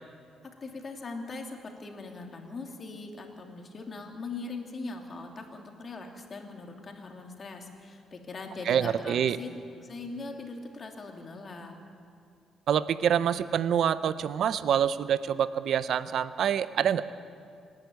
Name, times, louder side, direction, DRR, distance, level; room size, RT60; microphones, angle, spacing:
voice 1, 0.4-9.5 9.8-11.7, left 3 dB, 40° left, 2 dB, 2.8 m, -41 dB
voice 2, 8.7-9.4 12.7-17.0, right 9 dB, 70° right, 14 dB, 0.6 m, -26 dB
26.5 x 10.5 x 9.5 m, 2.4 s
cardioid pair, 90°, 0 cm